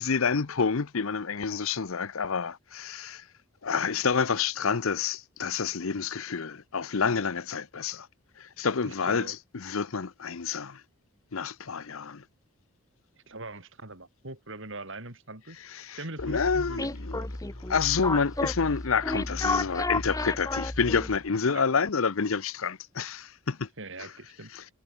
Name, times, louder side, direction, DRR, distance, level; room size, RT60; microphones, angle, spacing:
voice 1, 0.0-3.2 3.6-8.1 8.4-10.8 11.3-12.2 15.7-17.2 17.7-23.7 24.0-24.1 24.5-24.6, left 5 dB, 70° left, 0.8 m, -28 dB
voice 2, 8.8-9.4 13.3-15.6 16.0-16.9 17.1-17.3 21.5-21.6 23.8-24.5, right 2 dB, 60° right, 5.5 m, -41 dB
sound 1, 16.2-21.3, left 2 dB, 15° left, 0.9 m, -32 dB
head